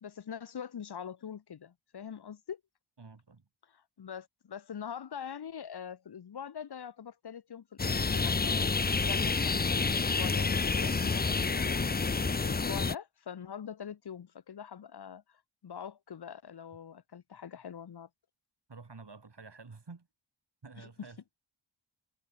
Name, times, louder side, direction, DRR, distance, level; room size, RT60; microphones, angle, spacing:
voice 1, 0.0-2.6 3.7-8.7 9.0-11.8 12.3-18.1 20.8-20.9, left 8 dB, 50° left, 0.8 m, -43 dB
voice 2, 3.0-3.5 18.7-20.1 20.6-21.4, right 4 dB, 55° right, 5.3 m, -50 dB
sound 1, 7.8-12.9, left 4 dB, 20° left, 0.5 m, -29 dB
wide cardioid pair, 65°, 49 cm